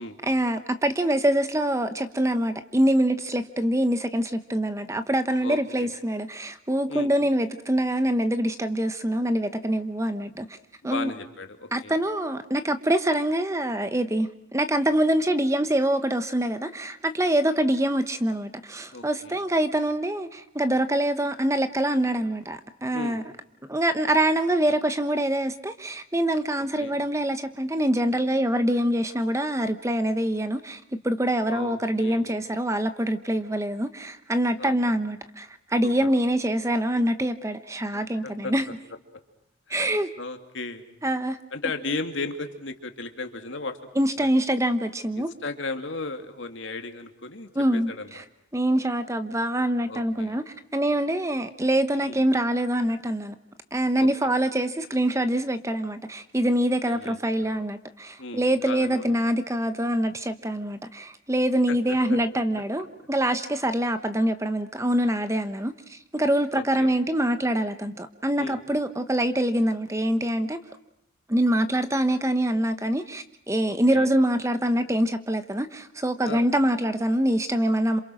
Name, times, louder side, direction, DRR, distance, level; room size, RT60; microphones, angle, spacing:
voice 1, 0.2-10.6 10.8-11.1 11.7-23.2 23.7-38.6 39.7-40.1 41.0-41.4 44.0-45.3 47.6-48.2 48.5-50.4 50.7-53.3 53.7-70.6 71.3-78.0, right 1 dB, 15° right, 1.0 m, -25 dB
voice 2, 5.4-5.9 6.9-7.1 10.8-11.9 18.9-19.4 22.9-23.2 26.8-27.0 31.5-32.3 34.6-35.0 35.8-36.1 37.9-38.5 39.7-39.8 40.2-40.9 41.5-43.8 44.2-44.3 45.2-48.2 49.9-50.4 52.0-52.2 54.0-54.3 56.8-57.6 58.2-59.2 61.7-62.0 66.5-66.9 68.3-68.6 73.9-74.1 76.2-76.5, left 3 dB, 65° left, 2.4 m, -36 dB
27.5 x 27.5 x 6.3 m
head